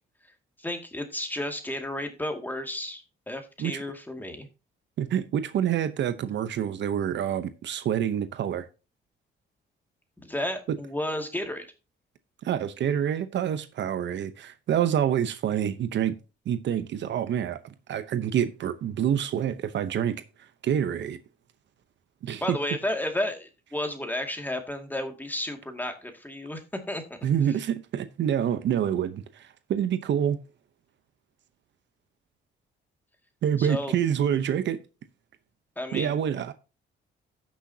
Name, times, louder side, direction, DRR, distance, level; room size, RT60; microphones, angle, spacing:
voice 1, 0.6-4.5 10.2-11.7 22.4-26.6 26.9-27.2 33.6-34.0 35.8-36.2, left 1 dB, 10° left, 2.2 m, -32 dB
voice 2, 5.0-8.6 10.7-10.8 12.4-16.2 16.5-20.1 20.6-21.2 22.2-22.6 27.2-30.4 33.4-34.8 35.9-36.5, right 9 dB, 65° right, 0.8 m, -27 dB
16.0 x 6.4 x 2.8 m
cardioid pair, 90°, 20 cm